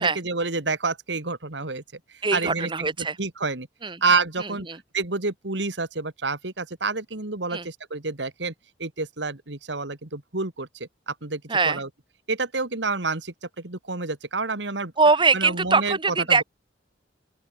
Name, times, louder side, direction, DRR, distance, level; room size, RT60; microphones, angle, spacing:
voice 1, 0.0-1.8 2.3-2.9 3.2-3.7 4.0-4.7 4.9-8.5 8.8-11.9 12.3-14.9 15.3-16.0 16.3-16.4, right 3 dB, 80° right, 2.4 m, -28 dB
voice 2, 2.2-3.2 3.8-4.0 4.4-4.8 7.5-7.7 11.5-11.8 15.0-16.4, right 4 dB, 30° right, 1.9 m, -22 dB
open air
head